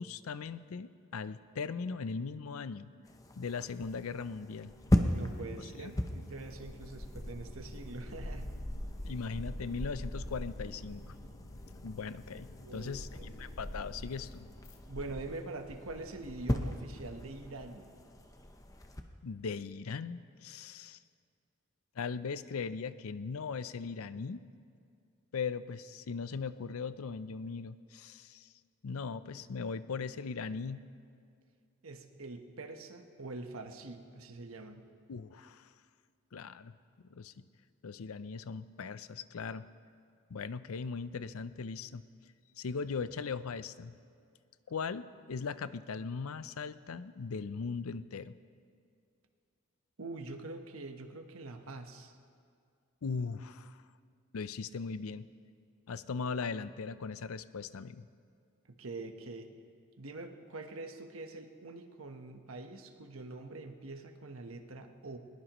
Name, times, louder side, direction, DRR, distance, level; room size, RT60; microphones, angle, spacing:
voice 1, 0.0-2.9 3.4-4.7 5.6-5.9 9.0-11.1 11.8-14.5 19.2-21.0 22.0-24.4 25.3-28.5 28.8-30.8 35.1-35.7 36.3-36.7 37.1-37.4 37.8-39.7 40.3-42.0 42.6-43.9 44.7-48.4 53.0-53.8 54.3-55.3 55.9-58.1, left 5 dB, 90° left, 14 dB, 0.5 m, -39 dB
sound 1, 3.0-19.0, left 1 dB, 15° left, 0.7 m, -38 dB
sound 2, 4.7-14.8, left 2 dB, 70° left, 1.3 m, -54 dB
voice 2, 5.1-8.5 12.6-12.9 13.2-13.5 14.9-17.9 31.8-34.8 50.0-52.1 58.7-59.5 60.0-65.2, right 2 dB, 80° right, 5 dB, 1.1 m, -44 dB
21.0 x 20.0 x 3.0 m, 2.2 s
head